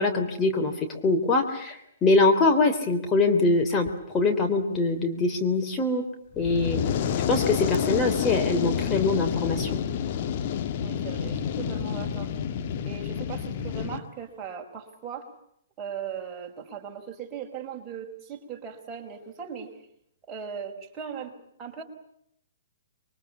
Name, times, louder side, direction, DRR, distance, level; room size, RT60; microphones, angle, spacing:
voice 1, 0.0-3.9 4.1-6.0 6.4-6.8 7.3-9.7, left 3 dB, 20° left, 3 dB, 3.4 m, -23 dB
Fire, 6.3-14.0, left 8 dB, 45° left, 2.0 m, -29 dB
voice 2, 10.8-12.3 12.8-15.3 15.8-19.7 20.3-21.8, right 7 dB, 20° right, 1 dB, 4.9 m, -38 dB
27.0 x 23.5 x 8.5 m, 0.72 s
figure-of-eight pair, 125°, 0 cm